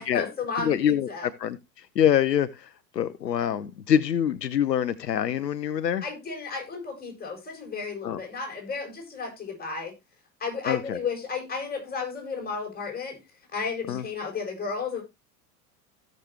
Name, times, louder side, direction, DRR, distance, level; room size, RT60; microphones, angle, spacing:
voice 1, 0.0-1.3 6.0-9.9 10.4-13.2 13.5-15.0, left 5 dB, 20° left, 7.2 m, -33 dB
voice 2, 0.6-6.0 8.0-8.2 10.6-11.0 13.9-14.0, left 9 dB, 85° left, 0.9 m, -25 dB
16.5 x 6.6 x 2.9 m
hypercardioid pair, 90°, 48 cm